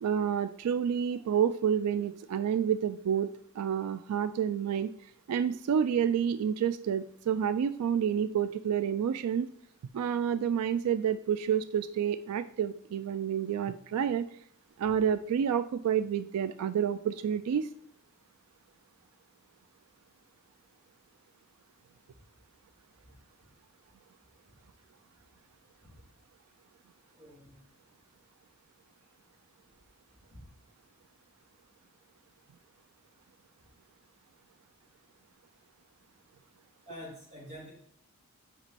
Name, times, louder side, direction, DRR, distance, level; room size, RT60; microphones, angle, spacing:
voice 1, 0.0-4.9 5.3-9.5 9.9-14.3 14.8-17.7, right 8 dB, 90° right, 14 dB, 0.3 m, -29 dB
voice 2, 27.1-27.6 30.3-30.4 36.9-37.7, equal, 30° right, -5 dB, 3.1 m, -47 dB
5.9 x 5.2 x 4.2 m, 0.68 s
head